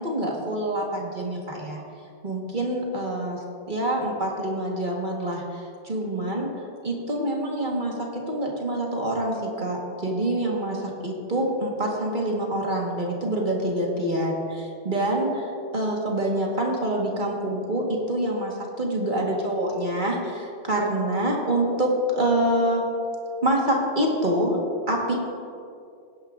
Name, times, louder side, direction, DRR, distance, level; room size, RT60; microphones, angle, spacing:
voice 1, 0.0-1.8 2.2-5.4 5.8-6.5 6.8-15.4 15.7-22.8 23.4-24.6 24.9-25.1, right 1 dB, 45° right, -1 dB, 1.6 m, -26 dB
18.5 x 10.5 x 2.5 m, 2.4 s
omnidirectional pair, 1.1 m